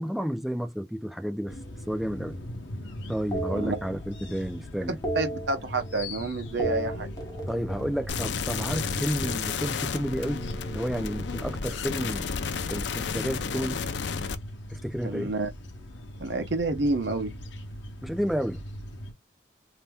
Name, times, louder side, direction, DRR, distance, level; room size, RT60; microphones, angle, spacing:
voice 1, 0.0-1.6 1.9-2.4 3.1-5.0 7.5-12.3 12.7-13.8 14.7-15.3 18.0-18.6, equal, ahead, 0.4 m, -31 dB
sound 1, 1.4-2.7 3.3-4.5 4.7-6.2 6.5-8.8 10.0-11.8, right 1 dB, 20° left, 0.8 m, -37 dB
sound 2, 1.5-19.1, left 1 dB, 90° left, 0.8 m, -40 dB
voice 2, 5.1-7.1 15.0-15.5 16.2-17.3, right 3 dB, 75° right, 0.8 m, -28 dB
sound 3, 8.1-14.3, left 6 dB, 75° left, 0.4 m, -32 dB
2.8 x 2.2 x 3.4 m
head